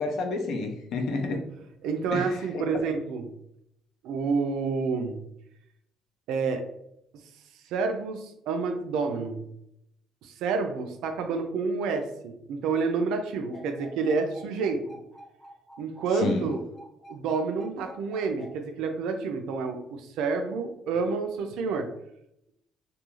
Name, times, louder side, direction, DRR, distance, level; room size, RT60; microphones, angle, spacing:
voice 1, 0.0-1.4 2.1-2.7 16.2-16.5, left 3 dB, 60° left, 3 dB, 0.5 m, -30 dB
voice 2, 1.8-3.2 4.0-5.2 6.3-6.7 7.7-9.4 10.2-14.8 15.8-16.6 17.1-21.9, right 4 dB, 75° right, 6 dB, 0.4 m, -29 dB
sound 1, 13.5-18.5, right 1 dB, 10° left, 0.7 m, -48 dB
2.4 x 2.3 x 3.0 m, 0.78 s
cardioid pair, 170°, 0 cm